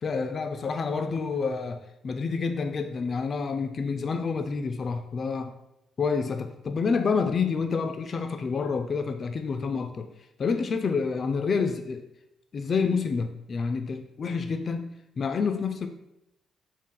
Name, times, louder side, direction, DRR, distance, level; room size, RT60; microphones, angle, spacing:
voice 1, 0.0-5.5 6.0-10.1 10.4-12.0 12.5-15.9, left 5 dB, 45° left, 7 dB, 0.3 m, -28 dB
3.6 x 2.4 x 3.7 m, 0.85 s
cardioid pair, 90°, 0 cm